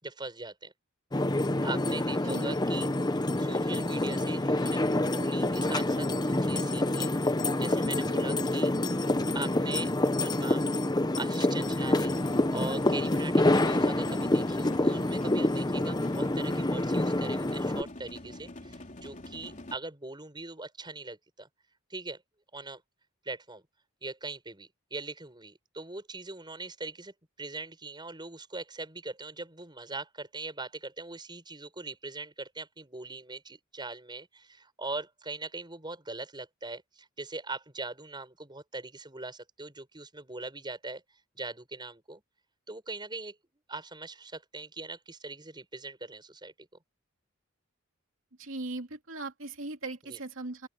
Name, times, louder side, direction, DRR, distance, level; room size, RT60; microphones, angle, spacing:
voice 1, 0.0-0.7 1.6-2.9 3.4-8.7 9.3-10.7 11.2-12.1 12.5-21.5 21.9-22.2 22.5-22.8 23.2-23.6 24.0-41.0 41.3-42.2 42.7-43.4 43.7-46.7 50.1-50.2, right 3 dB, 20° right, 6.4 m, -41 dB
sound 1, 1.1-17.8, left 1 dB, 20° left, 0.9 m, -27 dB
sound 2, 11.7-19.7, left 1 dB, 40° left, 3.5 m, -45 dB
voice 2, 48.4-50.7, right 2 dB, 80° right, 2.6 m, -38 dB
open air
head